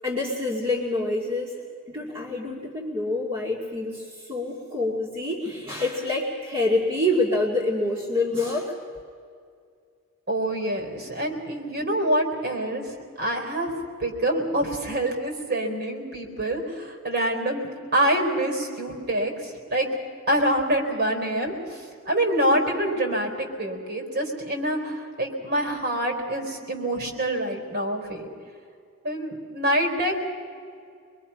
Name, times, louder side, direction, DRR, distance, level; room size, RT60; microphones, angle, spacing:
voice 1, 0.0-1.5 1.9-8.7, left 2 dB, 25° right, -3 dB, 2.4 m, -26 dB
voice 2, 10.3-12.8 13.2-13.7 14.0-19.9 20.3-28.3 29.0-30.1, right 1 dB, 50° right, 3 dB, 4.2 m, -26 dB
25.0 x 22.5 x 5.7 m, 2.2 s
head